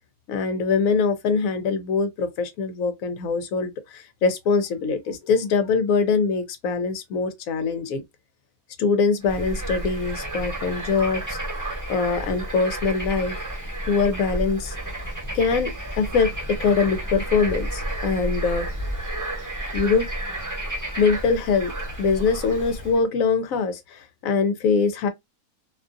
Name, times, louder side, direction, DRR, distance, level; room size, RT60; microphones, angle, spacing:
voice 1, 0.3-8.0 8.8-11.4 11.9-13.4 13.9-14.7 15.3-18.7 19.7-20.1 21.0-21.7 22.0-25.1, left 5 dB, 70° left, 1.0 m, -23 dB
Bird / Frog, 9.2-23.0, right 1 dB, 15° right, 1.0 m, -31 dB
2.7 x 2.4 x 2.5 m
omnidirectional pair, 1.5 m